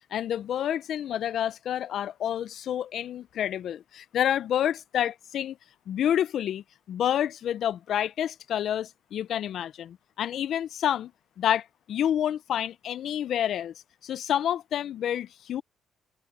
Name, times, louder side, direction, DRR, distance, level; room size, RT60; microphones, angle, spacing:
voice 1, 0.1-5.6 5.9-11.1 11.4-13.7 14.0-15.6, left 10 dB, 70° left, 0.5 m, -28 dB
open air
cardioid pair, 90°, 0 cm